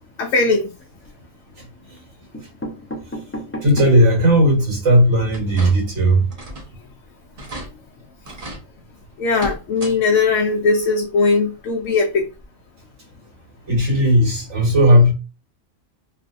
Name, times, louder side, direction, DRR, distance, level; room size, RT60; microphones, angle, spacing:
voice 1, 0.2-0.7 9.2-12.2, left 4 dB, 75° left, 1.0 m, -19 dB
sound 1, 0.6-1.2 2.0-2.1 2.3-4.1 4.6-4.7 4.9-5.0 5.3-5.5, equal, 15° left, 0.5 m, -34 dB
voice 2, 3.6-6.3 13.7-15.1, equal, 60° right, 1.7 m, -15 dB
sound 2, 5.3-6.0 6.3-6.7 7.0-7.1 7.4-7.7 8.2-8.6 9.2-10.0 10.3-10.4 11.8-11.9 12.4-12.5, right 1 dB, 35° right, 0.8 m, -34 dB
3.2 x 2.6 x 2.6 m
omnidirectional pair, 1.4 m